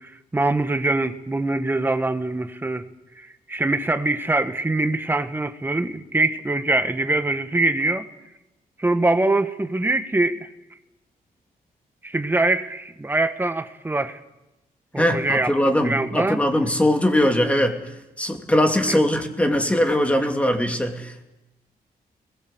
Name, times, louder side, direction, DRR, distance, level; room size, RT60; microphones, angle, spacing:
voice 1, 0.0-2.9 3.2-8.0 8.8-10.4 12.0-14.2 14.9-15.5 15.8-16.4 18.9-19.0, right 2 dB, 15° right, 9 dB, 1.4 m, -23 dB
voice 2, 15.0-21.2, left 1 dB, 10° left, 4 dB, 2.8 m, -21 dB
29.0 x 21.5 x 8.0 m, 0.98 s
cardioid pair, 140°, 16 cm